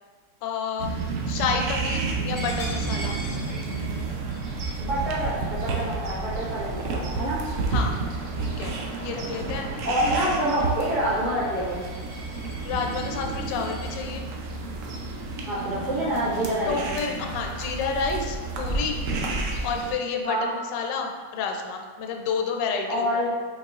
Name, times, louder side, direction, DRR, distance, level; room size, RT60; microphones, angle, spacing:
voice 1, 0.4-0.9 1.3-3.2 7.7-8.0 8.4-8.7 9.0-9.7 12.6-14.3 16.7-19.0 19.6-23.1, left 5 dB, 75° left, 3 dB, 1.2 m, -29 dB
sound 1, 0.8-19.9, right 3 dB, 85° right, 0.7 m, -30 dB
Coin (dropping), 2.4-7.8 8.2-8.5 8.9-14.0, equal, 30° left, 0.7 m, -43 dB
voice 2, 4.8-7.4 9.9-11.8 15.5-16.8 20.2-20.5 22.9-23.3, equal, 60° right, -8 dB, 2.0 m, -26 dB
5.4 x 4.0 x 2.4 m, 1.5 s
omnidirectional pair, 2.1 m